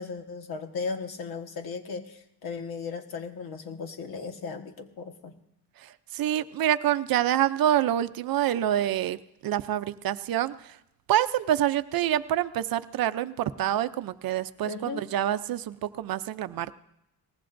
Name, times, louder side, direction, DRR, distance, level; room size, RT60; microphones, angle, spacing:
voice 1, 0.0-5.3 14.6-15.0, left 4 dB, 65° left, 5 dB, 1.6 m, -36 dB
voice 2, 5.8-9.2 9.4-10.8 11.1-16.7, right 11 dB, 60° right, 13 dB, 0.6 m, -27 dB
23.5 x 19.5 x 2.6 m, 0.80 s
cardioid pair, 175°, 40 cm